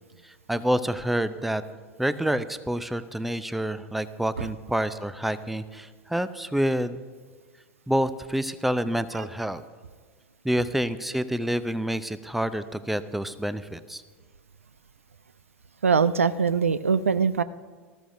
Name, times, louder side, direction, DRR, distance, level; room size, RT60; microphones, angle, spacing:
voice 1, 0.2-1.6 2.0-7.0 7.9-9.6 10.4-14.0, equal, ahead, 14 dB, 0.5 m, -28 dB
voice 2, 15.8-17.4, right 6 dB, 80° right, 16 dB, 0.4 m, -22 dB
18.5 x 13.5 x 2.6 m, 1.5 s
figure-of-eight pair, 85°, 7 cm